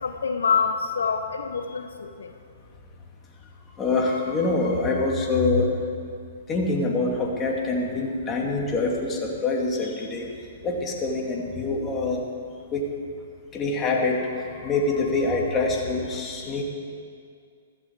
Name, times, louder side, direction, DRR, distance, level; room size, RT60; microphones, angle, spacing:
voice 1, 0.0-2.3, left 6 dB, 80° left, 7 dB, 0.8 m, -26 dB
voice 2, 3.8-5.7 6.5-10.3 10.6-12.2 12.7-12.8 13.5-16.6, left 3 dB, 20° left, -1 dB, 2.4 m, -25 dB
14.5 x 13.5 x 4.7 m, 2.2 s
hypercardioid pair, 120°, 0 cm